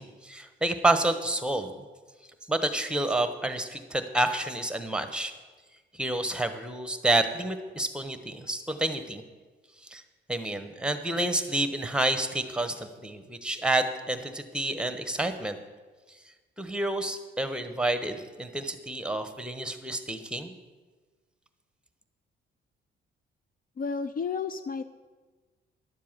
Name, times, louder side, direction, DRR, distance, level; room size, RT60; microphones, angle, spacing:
voice 1, 0.0-1.8 2.5-5.3 5.9-9.2 9.8-10.0 10.3-15.6 16.6-20.5, right 1 dB, 5° right, 9 dB, 1.1 m, -29 dB
voice 2, 23.8-24.8, left 5 dB, 45° left, 11 dB, 0.6 m, -31 dB
11.5 x 7.4 x 7.4 m, 1.3 s
cardioid pair, 90°, 20 cm